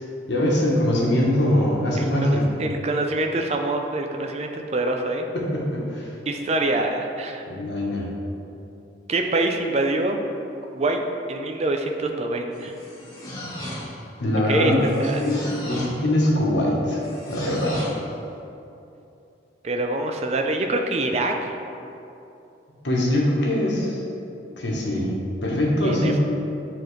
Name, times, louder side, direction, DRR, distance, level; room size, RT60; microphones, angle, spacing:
voice 1, 0.3-2.5 5.3-6.1 7.5-8.0 14.2-17.0 17.3-17.8 22.8-24.0 24.6-25.1 25.4-26.2, left 1 dB, 70° left, -3 dB, 1.2 m, -22 dB
voice 2, 2.0-5.3 6.3-7.4 9.1-10.2 10.7-12.7 14.5-14.7 15.0-15.3 19.6-21.5 25.8-26.2, right 2 dB, 35° right, 3 dB, 0.4 m, -25 dB
sound 1, 12.5-14.1 14.8-16.0 17.0-18.1, left 1 dB, 20° left, 1.1 m, -36 dB
9.1 x 3.9 x 3.2 m, 2.8 s
head